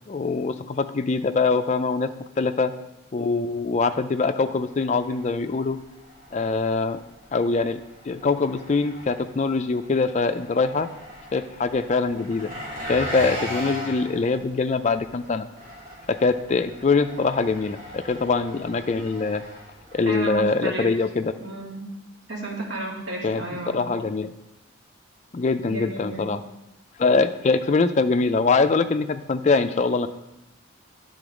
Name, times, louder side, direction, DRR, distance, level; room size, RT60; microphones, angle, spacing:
voice 1, 0.1-2.1 2.4-2.7 3.1-5.8 6.3-7.0 7.3-7.8 8.1-10.9 11.3-12.5 12.9-15.5 16.1-19.4 19.9-21.3 23.2-23.4 23.7-24.3 25.3-26.4 27.0-30.1, left 4 dB, 35° left, 9 dB, 0.3 m, -23 dB
Engine, 4.6-20.4, left 1 dB, 35° right, 2.6 m, -39 dB
voice 2, 20.1-20.9 21.4-21.9 22.3-23.9 25.6-26.3, right 2 dB, 60° right, -4 dB, 2.0 m, -32 dB
9.9 x 3.9 x 4.9 m, 0.96 s
head